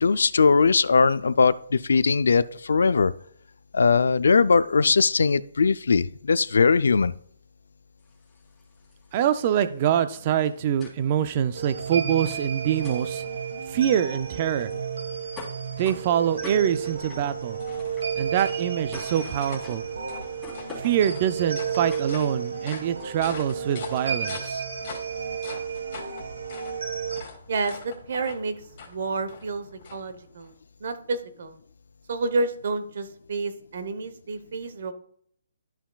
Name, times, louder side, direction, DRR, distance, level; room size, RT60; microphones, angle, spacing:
voice 1, 0.0-3.1 3.7-7.1, left 5 dB, 80° left, 16 dB, 0.4 m, -20 dB
sound 1, 8.0-24.5, left 4 dB, ahead, 2.6 m, -49 dB
voice 2, 9.1-13.2 13.7-14.7 15.8-17.6 18.2-19.8 20.8-24.6, right 9 dB, 25° right, 12 dB, 0.4 m, -25 dB
sound 2, 11.5-27.2, right 6 dB, 80° right, 1.2 m, -32 dB
sound 3, 16.0-30.5, left 4 dB, 30° left, 2.2 m, -44 dB
voice 3, 27.5-28.6 28.8-29.6 29.9-30.5 30.8-31.6 32.1-34.9, right 3 dB, 50° right, 10 dB, 0.9 m, -29 dB
12.5 x 5.7 x 2.3 m, 0.63 s
hypercardioid pair, 175°, 0 cm